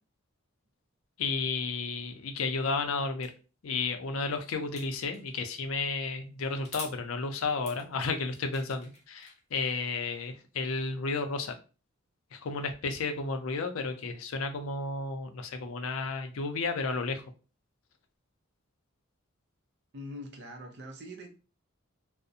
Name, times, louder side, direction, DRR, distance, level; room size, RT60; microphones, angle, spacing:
voice 1, 1.2-3.3 3.6-11.5 12.3-17.2, left 4 dB, 75° left, 0.4 m, -32 dB
sound 1, 3.2-3.3 4.8-5.4 6.6-7.0 7.5-9.7, left 3 dB, 35° left, 0.7 m, -46 dB
voice 2, 19.9-21.3, equal, 55° right, 0.5 m, -43 dB
2.5 x 2.0 x 2.6 m
head